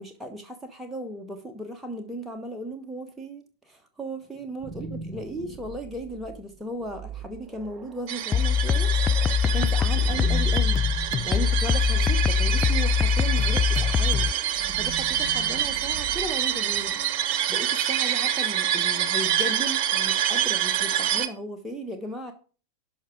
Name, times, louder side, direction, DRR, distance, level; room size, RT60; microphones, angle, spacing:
voice 1, 0.0-8.9 9.4-10.8 11.2-14.3 14.7-17.0 17.3-22.3, right 1 dB, 5° right, 2 dB, 1.2 m, -36 dB
sound 1, 4.3-17.2, right 6 dB, 20° right, 1.6 m, -40 dB
sound 2, 8.1-21.3, right 10 dB, 45° right, 1.0 m, -27 dB
sound 3, 8.3-14.3, left 7 dB, 20° left, 0.4 m, -23 dB
12.0 x 5.6 x 5.0 m, 0.37 s
figure-of-eight pair, 90°, 0 cm